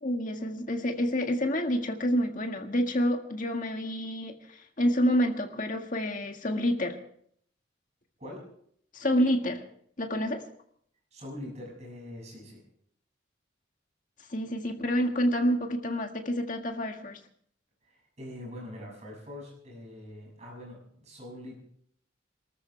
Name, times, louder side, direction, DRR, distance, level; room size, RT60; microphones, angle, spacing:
voice 1, 0.0-7.0 8.9-9.6 10.0-10.4 14.3-17.2, equal, 40° left, 4 dB, 1.8 m, -28 dB
voice 2, 11.1-12.6 17.8-21.6, left 1 dB, 35° right, -2 dB, 6.7 m, -43 dB
27.5 x 13.5 x 3.4 m, 0.65 s
head